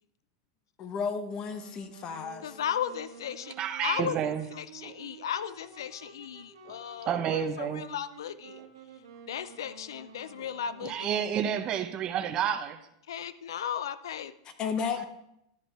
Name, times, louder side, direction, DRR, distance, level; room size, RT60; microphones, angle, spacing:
voice 1, 0.8-2.6 14.6-15.1, left 6 dB, 35° left, 1.1 m, -33 dB
Wind instrument woodwind instrument, 1.5-11.0, right 5 dB, 85° right, 1.3 m, -51 dB
voice 2, 2.4-3.5 3.8-8.6 9.3-11.2 13.1-14.3, left 9 dB, 85° left, 0.4 m, -36 dB
voice 3, 3.6-4.5 4.8-4.9 6.7-6.8 7.0-7.8 8.6-8.7 10.4-10.5 10.8-12.9, right 9 dB, 35° right, 0.8 m, -30 dB
12.0 x 5.1 x 4.4 m
hypercardioid pair, 120°, 2 cm